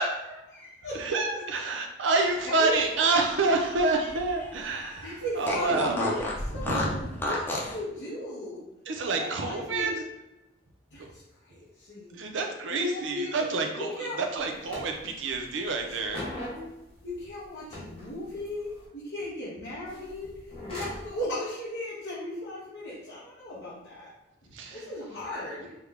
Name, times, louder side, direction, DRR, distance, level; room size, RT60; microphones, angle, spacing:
voice 1, 0.0-0.4 0.9-6.0 6.5-7.2 8.9-10.1 11.0-11.1 12.1-16.3 24.5-24.9, right 3 dB, 80° right, 3 dB, 0.5 m, -28 dB
voice 2, 0.5-1.0 1.3-1.4 2.4-2.8 5.0-6.2 6.5-6.9 7.2-8.6 9.1-9.9 10.9-11.2 11.5-12.2 12.7-13.4 13.8-14.2 15.9-16.0 17.0-20.3 20.7-24.1 24.4-25.7, left 1 dB, 80° left, -11 dB, 1.0 m, -36 dB
Fart, 2.4-4.5 4.8-4.9 5.4-7.8, left 1 dB, 10° left, 0.5 m, -32 dB
sound 1, 14.4-14.5 14.7-15.4 15.7-17.3 17.7-18.8 19.9-21.1, left 1 dB, 35° left, 1.4 m, -40 dB
3.4 x 2.2 x 3.5 m, 0.94 s
head